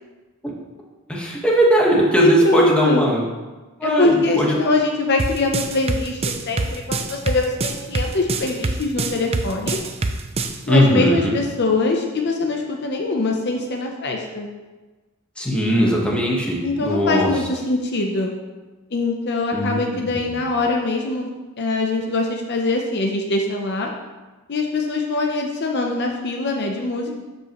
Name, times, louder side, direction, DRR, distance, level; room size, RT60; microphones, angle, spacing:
voice 1, 1.1-3.2 3.8-4.6 10.7-11.3 15.4-17.3 19.5-20.4, equal, 5° left, -3 dB, 1.3 m, -19 dB
voice 2, 2.2-3.0 3.8-9.8 10.7-14.5 16.6-18.3 18.9-23.9 24.5-27.1, left 2 dB, 50° left, 2 dB, 0.7 m, -22 dB
sound 1, 5.2-10.6, right 3 dB, 25° right, 0.5 m, -24 dB
12.0 x 5.4 x 3.0 m, 1.2 s
head